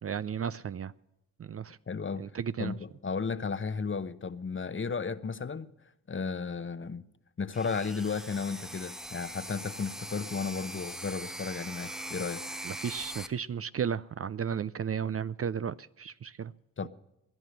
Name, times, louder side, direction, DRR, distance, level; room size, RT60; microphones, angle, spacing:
voice 1, 0.0-0.9 1.4-1.8 2.2-2.7 12.6-16.5, right 7 dB, 40° right, 0.5 m, -34 dB
voice 2, 1.9-2.3 2.6-5.7 6.1-7.0 7.4-12.4 16.8-16.9, left 5 dB, 35° left, 0.9 m, -34 dB
sound 1, 7.5-13.3, equal, ahead, 0.8 m, -41 dB
17.0 x 10.5 x 6.5 m
supercardioid pair, 50°, 36 cm